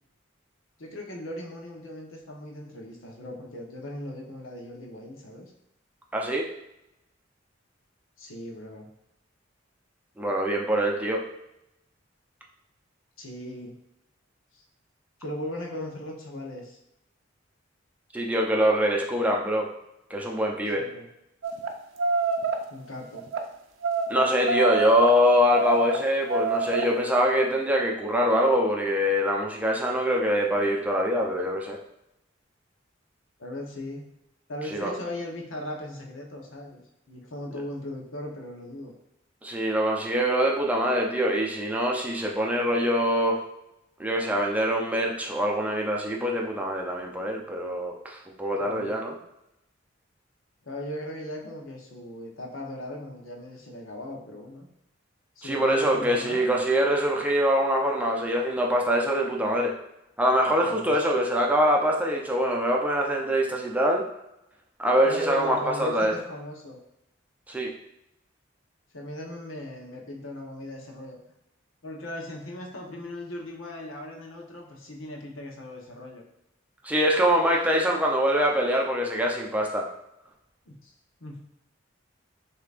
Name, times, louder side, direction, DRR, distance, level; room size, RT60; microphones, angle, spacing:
voice 1, 0.8-5.5 8.2-8.9 13.2-13.7 14.5-14.6 15.2-16.8 20.7-21.1 22.7-23.3 33.4-34.1 34.5-38.9 48.6-49.0 50.6-54.7 55.4-56.4 60.6-61.0 65.0-66.8 68.9-71.2 71.8-76.2 80.7-80.9 81.2-81.4, left 1 dB, 90° left, 0 dB, 1.0 m, -38 dB
voice 2, 6.1-6.5 10.2-11.2 18.1-19.7 20.1-20.8 24.1-31.8 34.7-34.9 39.4-43.4 44.0-49.1 55.4-59.7 60.2-64.0 64.8-66.1 67.5-67.7 76.8-79.9, equal, 10° right, -1 dB, 0.6 m, -24 dB
sound 1, 21.4-21.7 22.0-22.6 23.1-23.4 23.8-25.1 25.5-26.9, right 4 dB, 90° right, 0.5 m, -27 dB
6.7 x 2.9 x 2.5 m, 0.85 s
head